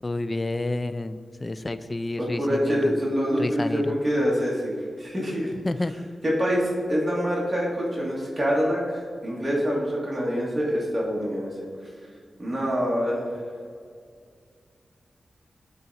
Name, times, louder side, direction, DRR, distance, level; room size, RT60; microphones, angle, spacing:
voice 1, 0.0-2.9 3.4-3.9 5.6-5.9, left 2 dB, 25° left, 12 dB, 0.3 m, -29 dB
voice 2, 2.2-5.5 6.2-11.5 12.4-13.4, equal, 15° right, -5 dB, 2.0 m, -25 dB
10.5 x 3.9 x 4.1 m, 2.1 s
wide cardioid pair, 130°, 0 cm